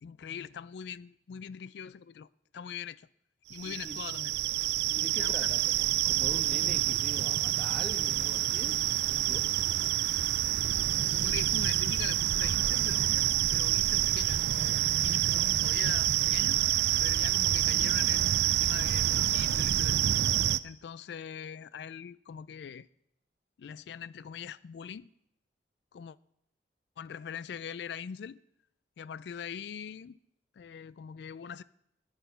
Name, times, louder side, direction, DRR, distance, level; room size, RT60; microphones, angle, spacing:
voice 1, 0.0-2.3 2.5-3.1 3.5-4.3 5.2-5.5 11.0-16.6 17.0-20.0 20.6-22.9 23.6-25.1 25.9-26.2 27.0-28.4 29.0-30.2 30.6-31.6, left 7 dB, 70° left, 0.3 m, -42 dB
sound 1, 3.5-20.6, right 13 dB, 65° right, 0.3 m, -27 dB
voice 2, 3.6-4.0 4.9-9.5, right 1 dB, 5° left, 1.1 m, -44 dB
10.0 x 9.6 x 5.5 m
head